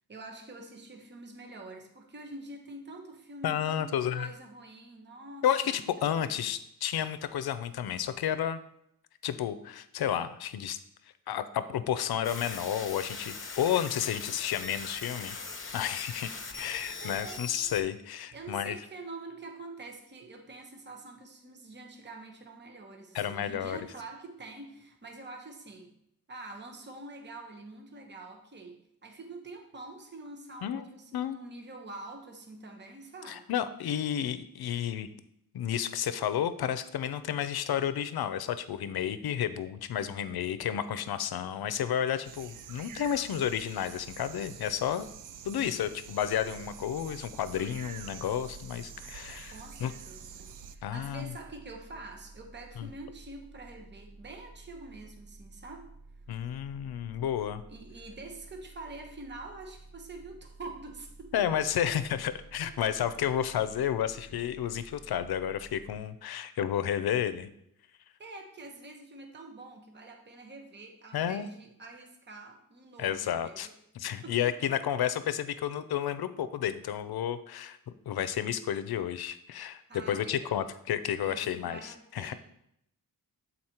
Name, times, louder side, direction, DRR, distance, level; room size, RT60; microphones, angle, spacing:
voice 1, 0.1-5.9 6.1-6.5 17.0-17.4 18.3-25.9 26.3-33.5 49.5-55.9 57.7-61.9 62.6-63.3 68.2-73.7 74.2-74.8 79.9-80.6 81.2-82.3, right 2 dB, 30° right, 3 dB, 0.9 m, -46 dB
voice 2, 3.4-4.3 5.4-8.6 9.2-10.8 11.3-18.8 23.1-23.8 30.6-30.8 31.1-31.4 33.3-35.1 35.5-45.1 45.4-49.9 50.8-51.3 52.8-52.9 56.3-57.6 61.3-67.5 71.1-71.5 73.0-73.7 73.9-77.8 78.1-79.8 80.1-82.3, left 9 dB, 85° left, 13 dB, 0.6 m, -31 dB
sound 1, 12.2-17.8, left 4 dB, 35° left, 0.9 m, -41 dB
Birds and bugs at night, 42.2-50.8, right 8 dB, 60° right, 0.5 m, -47 dB
sound 2, 46.2-65.9, right 2 dB, 80° right, 2.2 m, -52 dB
7.9 x 4.1 x 4.3 m, 0.76 s
wide cardioid pair, 120°, 36 cm